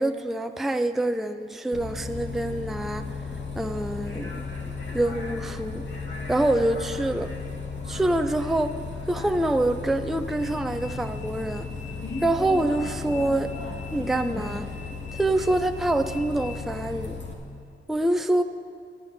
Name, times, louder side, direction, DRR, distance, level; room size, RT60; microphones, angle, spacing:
voice 1, 0.0-3.2 3.6-4.4 4.9-5.8 6.3-7.3 7.9-8.8 9.1-11.7 12.2-13.5 13.9-14.7 15.1-17.2 17.9-18.4, right 1 dB, ahead, 7 dB, 0.4 m, -26 dB
Bus, 1.7-17.3, left 4 dB, 60° left, 2.0 m, -35 dB
24.0 x 12.5 x 2.7 m, 2.5 s
wide cardioid pair, 90°, 21 cm